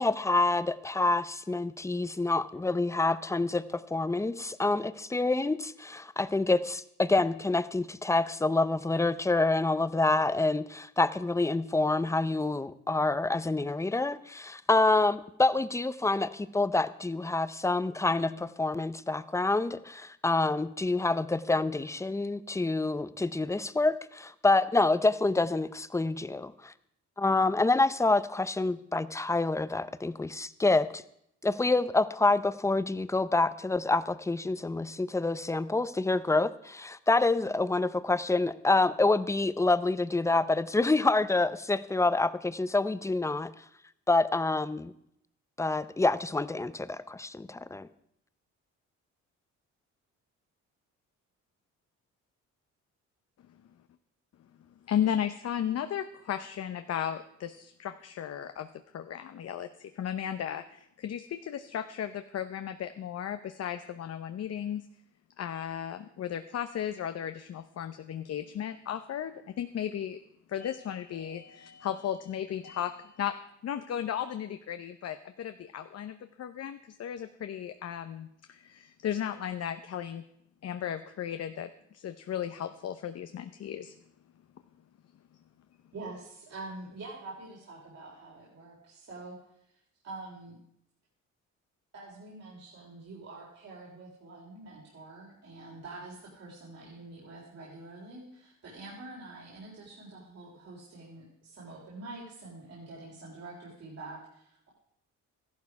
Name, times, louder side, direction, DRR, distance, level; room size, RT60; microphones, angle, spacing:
voice 1, 0.0-26.7 27.2-31.0 31.4-43.5 44.1-44.9 45.6-47.9, left 2 dB, 10° left, 15 dB, 0.6 m, -27 dB
voice 2, 54.9-58.7 58.9-64.8 65.4-70.2 70.5-73.4 73.6-80.2 80.6-83.9, left 9 dB, 55° left, 9 dB, 0.8 m, -35 dB
voice 3, 85.9-89.4 89.6-90.6 91.9-104.7, right 2 dB, 55° right, -4 dB, 3.8 m, -46 dB
14.0 x 11.5 x 4.7 m, 0.75 s
cardioid pair, 90°, 30 cm